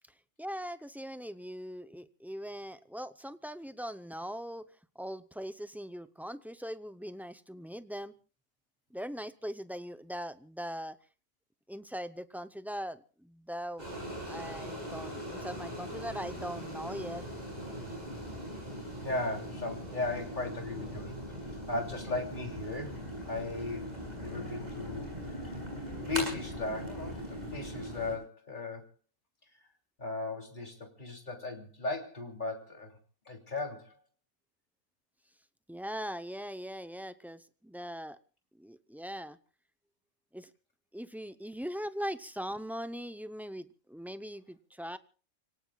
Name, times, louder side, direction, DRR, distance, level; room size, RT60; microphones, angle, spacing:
voice 1, 0.4-4.7 4.9-8.1 8.9-11.0 11.7-13.9 14.3-17.2 35.7-38.2 38.6-39.4 40.3-40.5 40.9-45.0, equal, ahead, 11 dB, 0.4 m, -40 dB
sound 1, 13.8-28.2, equal, 30° right, 8.3 m, -40 dB
voice 2, 19.0-21.2 21.7-25.4 26.0-28.9 30.0-32.9 33.3-34.0, left 3 dB, 40° left, 2 dB, 3.4 m, -37 dB
29.5 x 18.0 x 2.3 m, 0.37 s
omnidirectional pair, 1.3 m